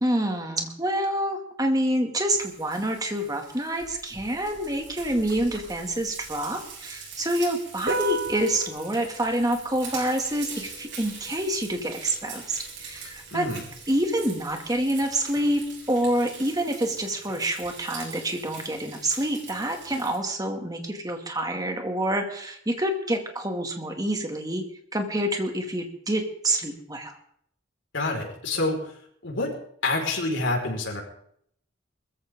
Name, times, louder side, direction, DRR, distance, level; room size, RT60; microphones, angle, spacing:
voice 1, 0.0-13.5 13.9-15.6 15.9-24.7 24.9-27.2, right 1 dB, 20° right, 4 dB, 2.4 m, -27 dB
Frying (food), 2.3-20.2, right 5 dB, 70° right, 8.0 m, -43 dB
Piano, 7.8-15.7, right 3 dB, 55° right, 4.0 m, -38 dB
voice 2, 13.3-13.6 27.9-28.9 29.2-29.6 29.8-31.0, left 2 dB, 90° left, 0 dB, 5.2 m, -27 dB
22.0 x 14.5 x 3.8 m, 0.68 s
head